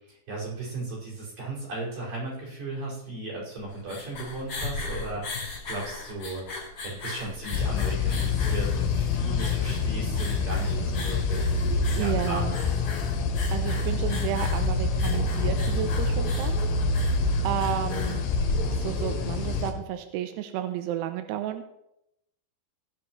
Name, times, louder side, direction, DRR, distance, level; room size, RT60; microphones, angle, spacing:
voice 1, 0.1-6.4 6.8-12.7, right 2 dB, 50° right, -6 dB, 7.2 m, -36 dB
sound 1, 3.6-19.0, left 3 dB, 40° left, 4.7 m, -37 dB
sound 2, 7.5-19.7, left 3 dB, 65° left, 3.3 m, -26 dB
voice 2, 11.9-12.5 13.5-16.5 17.4-18.3 18.7-21.6, right 11 dB, 85° right, 8 dB, 2.5 m, -31 dB
17.5 x 11.0 x 3.2 m, 0.83 s
omnidirectional pair, 5.4 m